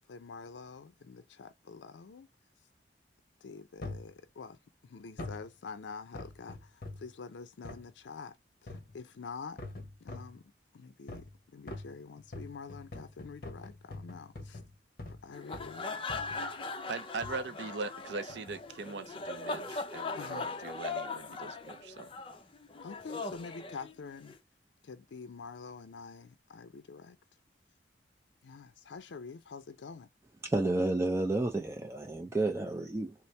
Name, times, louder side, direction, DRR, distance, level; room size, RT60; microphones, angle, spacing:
voice 1, 0.1-2.3 3.4-4.6 4.8-8.4 8.6-9.6 10.0-14.6 15.1-16.2 20.1-20.5 22.8-24.3 24.8-27.2 28.4-30.1, left 5 dB, 80° left, 0.4 m, -47 dB
sound 1, 3.8-4.1 5.2-5.5 6.1-7.1 7.6-7.9 8.7-9.0 9.6-10.4 11.1-11.4 11.7-15.2 15.5-15.8 16.1-16.5 17.2-17.4 18.3-18.6 19.2-19.3, left 2 dB, 55° left, 0.9 m, -44 dB
sound 2, 15.3-24.4, left 3 dB, 30° left, 0.6 m, -40 dB
voice 2, 16.9-22.1, right 4 dB, 70° right, 0.5 m, -41 dB
voice 3, 30.4-33.1, right 2 dB, 15° right, 0.4 m, -31 dB
4.2 x 2.0 x 3.2 m
head